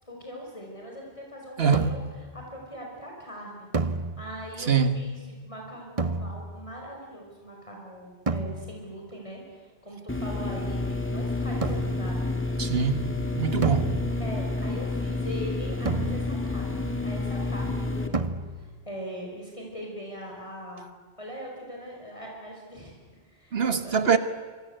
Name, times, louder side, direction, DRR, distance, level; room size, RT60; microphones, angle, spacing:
voice 1, 0.0-2.0 2.3-3.7 4.2-5.2 5.4-12.3 14.2-20.9 21.2-22.9 23.2-24.2, equal, 30° left, 5.2 m, -41 dB
voice 2, 1.6-2.0 4.6-5.0 12.6-13.1 13.4-14.0 23.5-24.2, right 6 dB, 70° right, 1.7 m, -23 dB
sound 1, 1.7-2.3 3.7-4.6 6.0-6.8 8.3-9.0 11.6-12.2 13.6-14.5 15.9-16.7 18.1-18.8, right 3 dB, 35° right, 1.0 m, -31 dB
sound 2, 10.1-18.1, left 2 dB, 10° left, 2.1 m, -29 dB
27.5 x 24.5 x 8.0 m
omnidirectional pair, 1.1 m